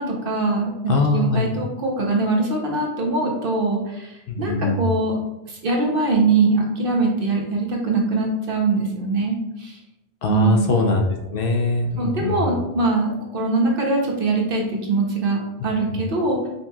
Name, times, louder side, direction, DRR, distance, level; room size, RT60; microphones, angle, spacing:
voice 1, 0.0-4.1 4.4-5.2 5.5-9.8 10.3-10.7 12.0-16.5, right 3 dB, 60° right, -1 dB, 0.9 m, -22 dB
voice 2, 0.9-1.5 4.3-4.9 10.2-12.6 15.9-16.0, left 2 dB, 65° left, 2 dB, 0.7 m, -22 dB
5.2 x 2.8 x 2.3 m, 0.95 s
omnidirectional pair, 1.1 m